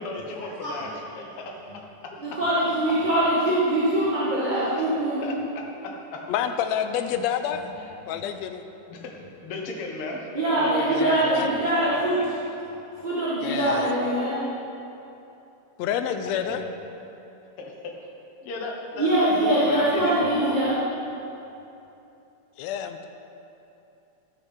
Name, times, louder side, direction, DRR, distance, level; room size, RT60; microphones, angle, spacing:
voice 1, 0.0-2.4 2.9-3.0 4.7-6.3 7.7-8.3 8.9-11.2 12.7-13.1 16.3-16.8 17.6-18.1 18.4-20.6, left 2 dB, 55° left, 0 dB, 2.0 m, -36 dB
voice 2, 2.2-5.3 10.3-12.2 13.0-14.4 19.0-20.7, right 1 dB, 20° right, -10 dB, 1.3 m, -23 dB
voice 3, 6.3-7.6 8.1-8.6 11.0-11.5 13.4-13.9 15.8-16.6 22.6-23.1, left 9 dB, 80° left, 8 dB, 1.7 m, -28 dB
12.5 x 8.2 x 5.7 m, 2.8 s
omnidirectional pair, 3.4 m